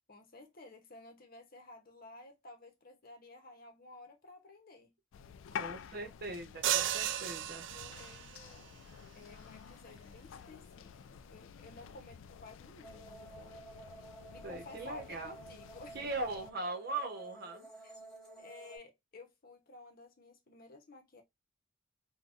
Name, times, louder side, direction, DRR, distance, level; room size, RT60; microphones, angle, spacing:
voice 1, 0.1-4.9 7.6-8.7 9.1-13.7 14.0-16.0 17.8-17.9 18.4-21.2, left 2 dB, 50° left, 0.8 m, -54 dB
sound 1, 5.1-16.5, left 7 dB, 80° left, 0.3 m, -50 dB
voice 2, 5.6-7.7 14.4-15.3 15.9-17.7, right 2 dB, 55° right, 0.9 m, -40 dB
sound 2, 6.6-8.4, right 11 dB, 70° right, 0.3 m, -34 dB
sound 3, 12.8-18.8, right 2 dB, 5° left, 1.2 m, -52 dB
3.9 x 2.3 x 2.4 m
head